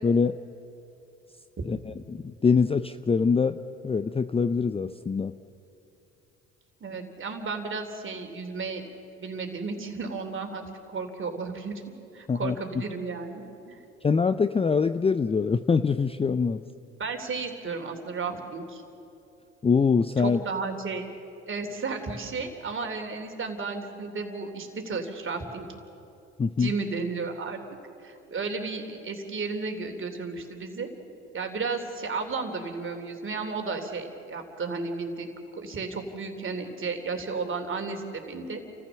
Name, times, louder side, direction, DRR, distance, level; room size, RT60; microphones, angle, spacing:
voice 1, 0.0-0.4 1.7-3.6 3.8-5.3 12.3-12.6 14.0-16.6 19.6-20.4 26.4-26.7, left 5 dB, 15° left, 11 dB, 0.5 m, -24 dB
voice 2, 6.8-8.9 9.2-10.6 10.9-11.7 12.1-13.8 17.0-18.8 20.2-21.1 21.5-25.7 26.6-27.6 28.0-30.9 31.3-35.3 35.5-38.6, right 4 dB, 35° right, 4 dB, 3.3 m, -33 dB
29.0 x 14.5 x 7.1 m, 2.7 s
hypercardioid pair, 65°, 35 cm